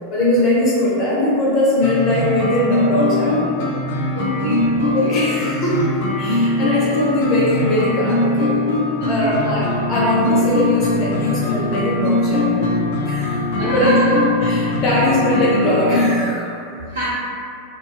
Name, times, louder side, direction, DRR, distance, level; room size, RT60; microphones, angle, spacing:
voice 1, 0.1-3.5 4.9-5.8 6.2-8.5 9.1-12.7 13.1-13.4 13.6-16.6, left 1 dB, 40° left, -7 dB, 0.9 m, -20 dB
sound 1, 1.8-16.2, left 2 dB, 60° left, 0.3 m, -21 dB
voice 2, 4.1-5.2 6.6-6.7 9.0-9.4 13.6-14.2 16.9-17.1, right 1 dB, 70° right, -10 dB, 0.5 m, -24 dB
2.6 x 2.2 x 2.3 m, 2.5 s
figure-of-eight pair, 90°, 0 cm